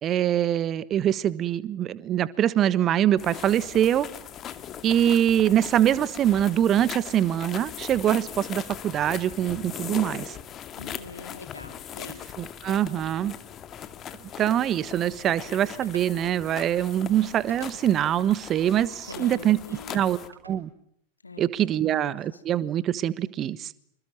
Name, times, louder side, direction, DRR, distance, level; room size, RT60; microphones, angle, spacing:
voice 1, 0.0-4.1 4.8-10.4 12.4-13.3 14.4-20.2 20.5-20.7 21.4-23.7, right 11 dB, 30° right, 18 dB, 1.3 m, -24 dB
sound 1, 3.2-20.3, left 9 dB, 30° left, 2.1 m, -40 dB
voice 2, 10.8-12.3 19.0-20.1 21.2-21.4 21.7-22.0, left 4 dB, 80° left, 8 dB, 2.7 m, -43 dB
sound 2, 15.8-16.1 17.5-18.1 19.1-19.3 19.9-20.6, right 2 dB, 80° right, 6.1 m, -47 dB
27.5 x 26.0 x 7.6 m, 0.70 s
figure-of-eight pair, 90°, 0 cm